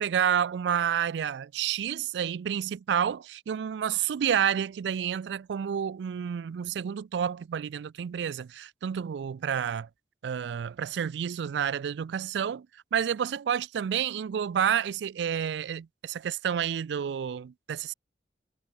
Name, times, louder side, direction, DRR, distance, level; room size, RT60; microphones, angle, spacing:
voice 1, 0.0-9.9 10.2-17.9, right 8 dB, 70° right, 0.3 m, -29 dB
head